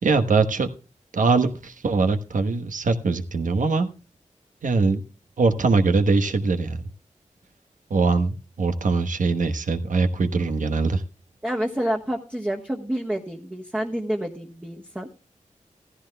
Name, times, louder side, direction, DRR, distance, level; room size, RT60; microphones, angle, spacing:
voice 1, 0.0-0.7 1.1-3.9 4.6-5.0 5.4-6.8 7.9-11.0, right 3 dB, 90° right, 8 dB, 1.2 m, -22 dB
voice 2, 11.4-15.1, equal, 10° right, -1 dB, 1.2 m, -28 dB
15.5 x 14.5 x 2.2 m, 0.32 s
wide cardioid pair, 90°, 13 cm